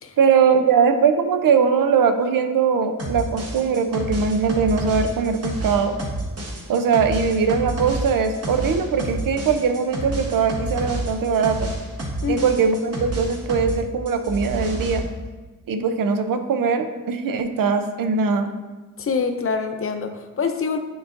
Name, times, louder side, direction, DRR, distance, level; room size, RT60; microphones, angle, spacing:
voice 1, 0.2-5.9 6.7-11.7 12.3-15.0 15.7-18.5, right 5 dB, 80° right, 8 dB, 0.6 m, -21 dB
sound 1, 3.0-13.8 14.1-15.0, right 1 dB, 45° right, 1.1 m, -29 dB
voice 2, 19.0-20.8, left 5 dB, 40° left, 7 dB, 0.6 m, -25 dB
9.5 x 3.9 x 2.5 m, 1.2 s
wide cardioid pair, 100°, 33 cm